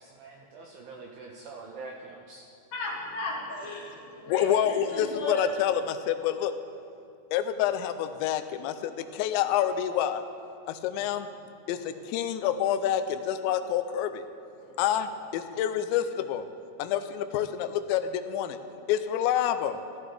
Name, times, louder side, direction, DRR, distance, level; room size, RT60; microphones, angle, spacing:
voice 1, 0.0-2.5, right 3 dB, 85° right, 0 dB, 2.1 m, -44 dB
voice 2, 2.7-5.4 14.6-14.8, left 1 dB, 50° left, -5 dB, 3.0 m, -35 dB
voice 3, 4.3-6.5 7.3-10.2 10.7-11.3 11.7-14.3 14.8-16.5 16.8-18.6 18.9-19.8, left 10 dB, 85° left, 9 dB, 2.8 m, -28 dB
14.5 x 13.5 x 3.4 m, 2.5 s
omnidirectional pair, 5.1 m